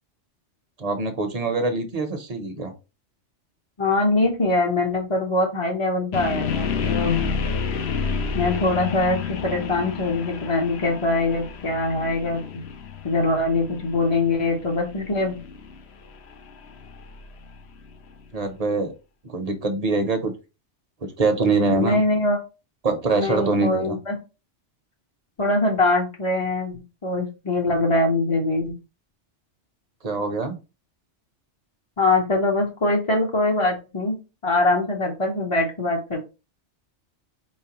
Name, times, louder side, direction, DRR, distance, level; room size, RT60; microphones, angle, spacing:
voice 1, 0.8-2.7 18.3-18.9 19.2-20.3 21.0-22.0 22.8-24.0 30.0-30.6, right 3 dB, 40° right, 6 dB, 0.7 m, -24 dB
voice 2, 3.8-7.3 8.3-12.6 13.0-15.4 21.7-22.4 23.1-24.2 25.4-28.7 32.0-34.2 34.4-36.2, left 2 dB, 35° left, -2 dB, 0.6 m, -23 dB
sound 1, 6.1-18.1, left 6 dB, 65° left, 0.8 m, -30 dB
4.3 x 3.2 x 2.9 m, 0.29 s
omnidirectional pair, 1.2 m